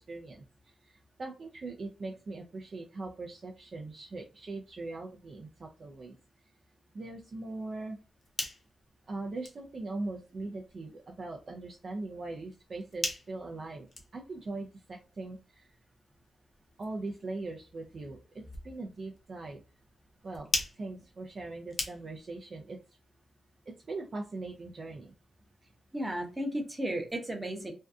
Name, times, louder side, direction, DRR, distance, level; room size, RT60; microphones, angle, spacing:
voice 1, 0.1-0.4 0.8-0.9 1.2-6.2 6.9-8.0 9.1-15.7 16.8-19.6 20.2-20.5 20.8-22.8 23.7-25.1, right 2 dB, 45° right, 0 dB, 0.4 m, -40 dB
sound 1, 8.0-22.4, left 2 dB, 45° left, 0.6 m, -43 dB
voice 2, 25.9-27.7, right 1 dB, 15° right, 2 dB, 0.7 m, -34 dB
2.6 x 2.2 x 2.3 m, 0.32 s
cardioid pair, 105°, 0 cm